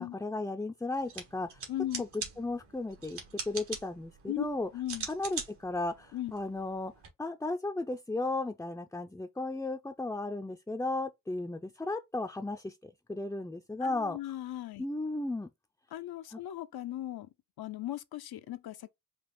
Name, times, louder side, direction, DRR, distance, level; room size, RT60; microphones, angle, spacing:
voice 1, 0.0-1.6 2.0-3.2 3.5-4.7 5.1-6.9 7.2-14.2 14.8-15.5 16.3-16.4, left 2 dB, 5° left, 0.5 m, -35 dB
sound 1, 1.0-7.1, right 5 dB, 80° right, 2.0 m, -43 dB
voice 2, 1.7-2.0 4.3-4.5 4.7-5.1 6.1-6.3 13.8-14.8 15.9-17.3 17.6-18.9, left 13 dB, 70° left, 0.7 m, -37 dB
5.3 x 2.4 x 3.7 m
cardioid pair, 60°, 39 cm